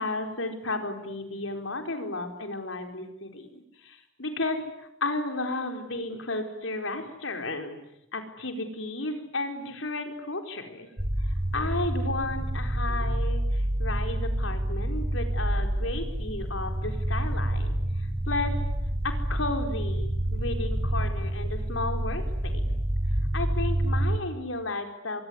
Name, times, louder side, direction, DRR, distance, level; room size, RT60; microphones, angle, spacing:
voice 1, 0.0-7.8 8.1-10.9 11.2-17.7 18.3-18.6 19.0-22.6 23.3-25.2, left 2 dB, 90° left, 5 dB, 4.6 m, -33 dB
sound 1, 11.0-24.2, right 1 dB, 35° right, 2.9 m, -28 dB
24.5 x 24.0 x 9.9 m, 0.81 s
head